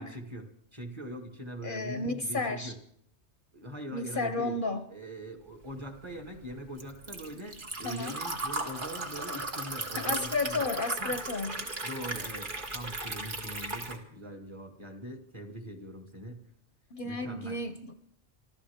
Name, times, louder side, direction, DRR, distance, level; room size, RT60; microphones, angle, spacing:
voice 1, 0.0-2.8 3.5-4.6 4.9-10.7 11.0-11.2 11.5-16.4 17.0-17.6, equal, 25° right, 2 dB, 1.9 m, -42 dB
voice 2, 1.6-2.7 3.9-4.8 7.8-8.2 10.0-11.6 16.9-17.9, left 3 dB, 50° left, 9 dB, 0.9 m, -32 dB
Liquid, 5.7-14.0, right 2 dB, 50° right, 1.8 m, -36 dB
25.5 x 14.5 x 3.6 m, 0.69 s
omnidirectional pair, 1.2 m